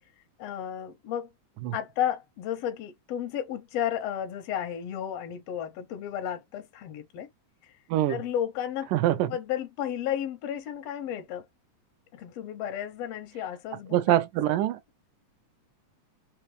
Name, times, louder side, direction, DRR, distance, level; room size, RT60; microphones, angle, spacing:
voice 1, 0.4-1.3 1.7-7.3 7.6-7.7 8.1-8.9 9.2-11.5 12.1-14.1 14.5-14.6, left 10 dB, 80° left, 1.4 m, -33 dB
voice 2, 8.9-9.3 13.9-14.8, right 13 dB, 85° right, 2.4 m, -24 dB
5.7 x 2.1 x 3.1 m
omnidirectional pair, 3.7 m